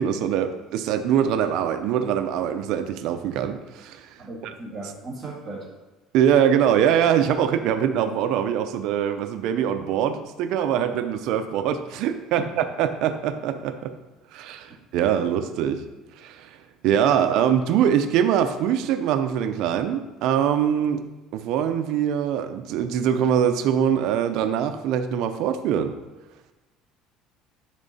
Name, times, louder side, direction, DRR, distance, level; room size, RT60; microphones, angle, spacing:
voice 1, 0.0-4.5 6.1-13.9 14.3-15.8 16.2-16.6 16.8-21.0 21.3-25.9, right 9 dB, 55° right, 8 dB, 0.5 m, -23 dB
voice 2, 4.2-5.6, right 2 dB, 5° right, -9 dB, 2.0 m, -37 dB
10.5 x 3.8 x 4.2 m, 1.1 s
cardioid pair, 170°, 0 cm